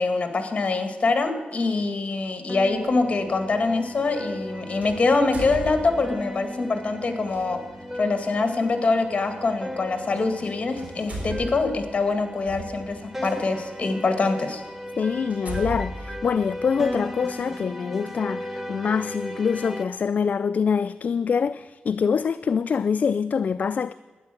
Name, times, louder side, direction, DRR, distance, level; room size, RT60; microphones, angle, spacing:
voice 1, 0.0-7.6 8.0-14.6, left 3 dB, 40° left, 1.9 m, -24 dB
sound 1, 2.5-19.8, equal, 10° right, 1.4 m, -36 dB
sound 2, 2.7-2.9 4.8-6.3 7.2-7.4 9.3-9.4 10.3-10.5 10.7-13.3 14.0-14.1 14.6-14.7 15.3-17.1, right 1 dB, 50° right, 4.2 m, -36 dB
voice 2, 15.0-23.9, left 6 dB, 55° left, 0.3 m, -25 dB
12.0 x 9.8 x 7.7 m
cardioid pair, 90°, 3 cm